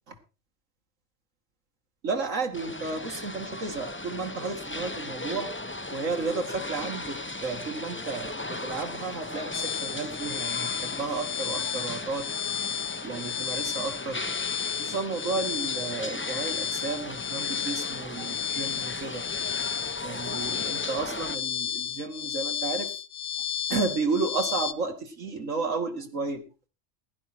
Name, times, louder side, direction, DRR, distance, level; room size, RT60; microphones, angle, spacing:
voice 1, 2.0-5.5 5.9-12.3 13.0-14.2 14.8-19.2 20.0-22.9 23.7-26.4, right 4 dB, 85° right, 5 dB, 2.6 m, -32 dB
sound 1, 2.5-21.3, left 2 dB, 10° left, 0.7 m, -37 dB
sound 2, 9.5-24.7, left 8 dB, 85° left, 1.2 m, -33 dB
16.0 x 11.0 x 4.5 m, 0.33 s
omnidirectional pair, 1.3 m